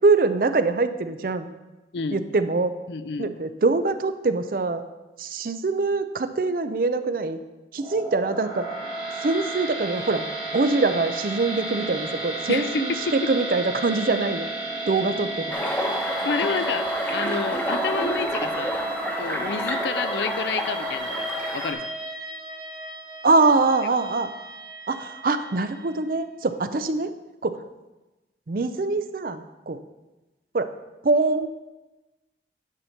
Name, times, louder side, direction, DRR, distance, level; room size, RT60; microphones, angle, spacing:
voice 1, 0.0-1.5 2.1-2.7 3.2-4.8 5.2-7.4 7.7-8.7 9.2-10.3 10.5-14.5 14.9-15.5 23.2-24.3 24.9-27.1 27.4-27.6 28.5-29.8 30.5-30.7 31.0-31.5, right 3 dB, 50° right, 11 dB, 0.5 m, -23 dB
voice 2, 1.9-2.3 2.9-3.3 12.5-13.3 16.2-18.8 19.2-21.9, left 5 dB, 80° left, 13 dB, 0.4 m, -29 dB
sound 1, 7.8-26.0, right 2 dB, 25° right, 1.6 m, -33 dB
sound 2, 15.5-21.7, equal, 10° left, 0.9 m, -29 dB
9.7 x 4.4 x 5.7 m, 1.1 s
head